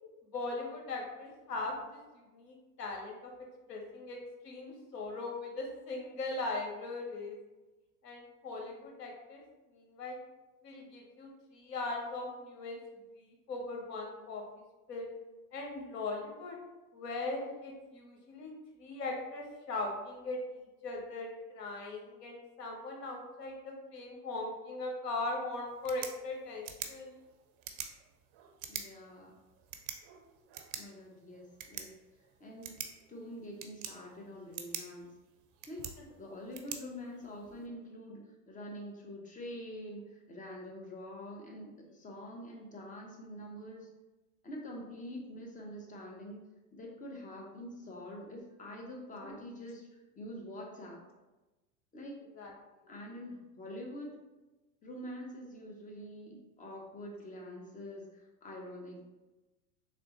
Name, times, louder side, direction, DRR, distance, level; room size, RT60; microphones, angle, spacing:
voice 1, 0.3-3.3 3.7-7.4 8.0-9.4 9.7-10.2 10.6-12.8 13.1-14.4 14.9-15.1 15.5-16.6 16.9-18.5 18.8-27.1 49.2-49.3 52.4-52.5, left 2 dB, 90° left, 1 dB, 1.1 m, -39 dB
sound 1, 25.7-37.7, right 9 dB, 45° right, 0.6 m, -47 dB
voice 2, 28.7-29.3 30.8-31.9 32.4-32.8 33.1-35.1 35.7-35.8 36.2-43.9 44.4-46.4 46.7-49.9 50.2-51.0 51.9-52.2 52.9-54.2 54.8-59.1, equal, 15° left, 0 dB, 0.8 m, -45 dB
3.7 x 3.3 x 3.0 m, 1.1 s
hypercardioid pair, 100°, 47 cm